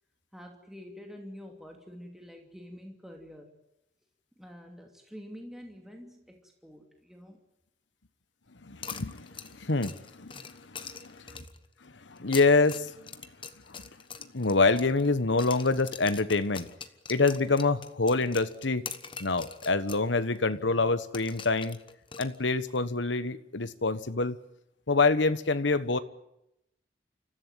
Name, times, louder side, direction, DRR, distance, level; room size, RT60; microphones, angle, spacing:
voice 1, 0.3-3.5 4.4-7.4, equal, ahead, 2.7 m, -47 dB
voice 2, 8.6-11.3 11.8-13.1 14.3-16.7 17.1-18.9 19.2-21.8 22.2-24.4 24.9-26.0, left 3 dB, 80° left, 1.2 m, -26 dB
sound 1, 8.8-11.7 12.2-15.1 15.4-20.1 20.3-20.4 21.1-22.8, left 6 dB, 25° left, 1.2 m, -43 dB
29.0 x 15.0 x 9.3 m
head